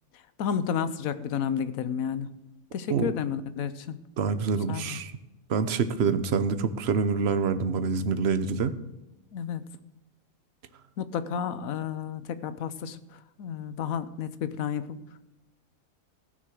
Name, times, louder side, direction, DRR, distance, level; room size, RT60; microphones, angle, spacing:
voice 1, 0.4-2.3 2.7-4.0 4.7-5.0 9.3-9.6 11.0-15.0, left 8 dB, 75° left, 13 dB, 1.2 m, -31 dB
voice 2, 4.2-5.1 5.5-8.7, right 5 dB, 50° right, 11 dB, 1.0 m, -26 dB
15.0 x 6.3 x 7.6 m, 0.97 s
omnidirectional pair, 1.5 m